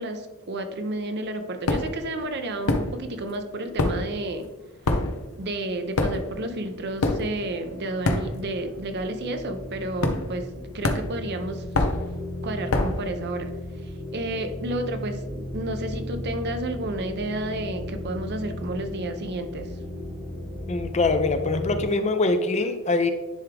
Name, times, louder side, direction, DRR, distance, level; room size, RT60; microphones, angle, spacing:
voice 1, 0.0-4.5 5.4-11.6 12.4-19.7, right 1 dB, 50° right, 7 dB, 0.7 m, -31 dB
sound 1, 1.7-2.1 2.6-3.3 3.6-8.7 8.9-9.3 10.0-10.5 10.8-13.1, left 2 dB, 75° left, 0.8 m, -26 dB
sound 2, 5.9-21.8, left 1 dB, 10° left, 1.0 m, -36 dB
voice 2, 20.7-23.1, left 3 dB, 30° left, 8 dB, 0.5 m, -23 dB
10.0 x 3.6 x 3.4 m, 1.1 s
head